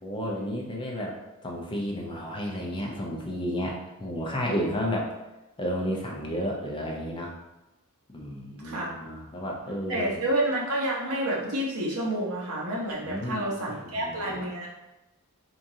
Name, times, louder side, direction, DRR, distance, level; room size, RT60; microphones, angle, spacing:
voice 1, 0.0-5.1 5.6-7.3 8.1-10.2 13.0-14.4, equal, 20° left, -1 dB, 0.6 m, -32 dB
voice 2, 8.6-8.9 9.9-14.7, right 1 dB, 70° right, -3 dB, 0.9 m, -29 dB
3.5 x 2.9 x 2.7 m, 1.0 s
head